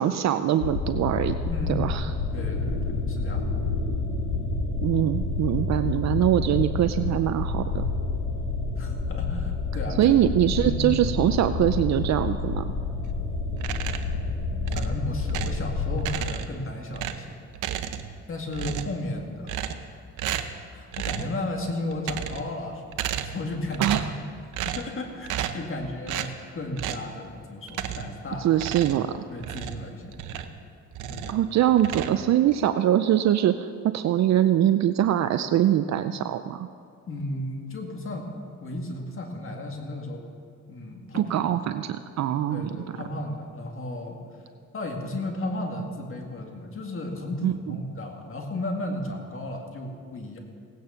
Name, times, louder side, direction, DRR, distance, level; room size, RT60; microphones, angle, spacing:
voice 1, 0.0-1.4 1.7-2.1 4.8-7.8 10.0-12.7 23.8-24.0 28.4-29.2 31.3-36.7 41.1-42.8 47.4-47.5, right 11 dB, 65° right, 10 dB, 0.5 m, -23 dB
sound 1, 0.6-16.1, left 3 dB, 85° left, 2.6 m, -29 dB
voice 2, 1.4-2.1 2.3-3.5 8.8-10.1 10.6-10.9 14.7-17.4 18.3-19.6 20.7-22.8 23.2-24.0 24.6-28.5 29.3-30.5 31.1-31.4 37.1-38.3 38.6-40.2 40.7-41.6 42.5-44.2 44.7-50.4, left 1 dB, 45° left, 2 dB, 2.2 m, -34 dB
sound 2, 13.6-14.2 14.7-15.7 16.0-16.6 16.9-18.2 18.5-19.0 19.5-19.9 20.2-20.6 20.9-21.4 21.9-22.5 22.9-23.5 23.7-24.2 24.5-24.9 25.3-25.7 26.1-26.3 26.8-27.1 27.7-28.2 28.5-30.6 30.9-31.4 31.8-32.6, right 10 dB, 85° right, 0.8 m, -33 dB
17.5 x 9.3 x 5.7 m, 2.3 s
cardioid pair, 90°, 30 cm